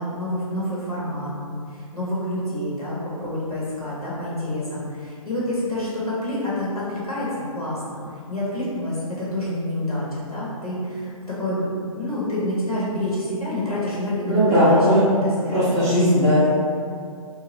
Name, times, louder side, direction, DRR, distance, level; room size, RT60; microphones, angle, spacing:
voice 1, 0.0-8.0 8.3-14.4 14.7-14.8 15.2-15.8, left 1 dB, 90° left, -8 dB, 1.1 m, -28 dB
voice 2, 14.3-15.0 15.5-16.5, equal, 5° right, -18 dB, 0.7 m, -17 dB
2.7 x 2.3 x 3.0 m, 2.3 s
figure-of-eight pair, 130°, 18 cm